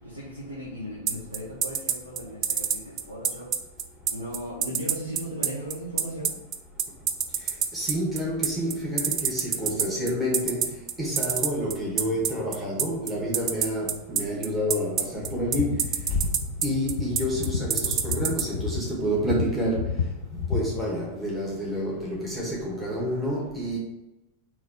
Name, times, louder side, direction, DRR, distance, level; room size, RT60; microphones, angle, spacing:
voice 1, 0.0-3.6 4.1-6.4, equal, 85° right, -7 dB, 1.0 m, -37 dB
sound 1, 1.1-18.4, right 8 dB, 35° right, 0.4 m, -25 dB
voice 2, 7.7-15.8 16.1-16.2 16.6-19.8 20.5-23.8, equal, 10° right, -6 dB, 1.4 m, -29 dB
sound 2, 15.2-20.9, left 5 dB, 65° left, 0.4 m, -31 dB
3.9 x 3.1 x 4.5 m, 0.94 s
figure-of-eight pair, 90°, 0 cm